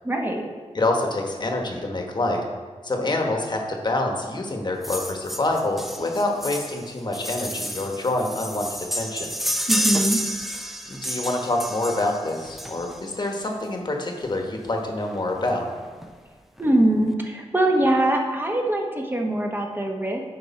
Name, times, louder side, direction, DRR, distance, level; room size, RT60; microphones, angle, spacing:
voice 1, 0.0-0.4 9.7-10.2 16.6-20.2, right 1 dB, 15° right, 1 dB, 1.1 m, -22 dB
voice 2, 0.7-2.5 2.8-9.3 10.9-15.7, left 2 dB, 40° left, 2 dB, 1.2 m, -26 dB
sound 1, 4.8-13.2 14.2-14.3 14.7-14.8 15.0-15.1 15.5-16.1 16.6-16.7, equal, ahead, 0.6 m, -30 dB
10.0 x 4.7 x 4.2 m, 1.5 s
wide cardioid pair, 85°, 12 cm